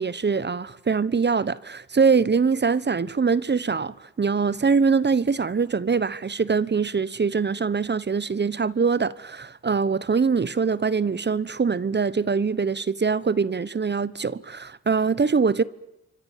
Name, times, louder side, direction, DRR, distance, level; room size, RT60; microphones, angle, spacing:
voice 1, 0.0-15.6, right 5 dB, 35° right, 1.0 m, -23 dB
28.5 x 24.5 x 7.5 m
cardioid pair, 65°, 32 cm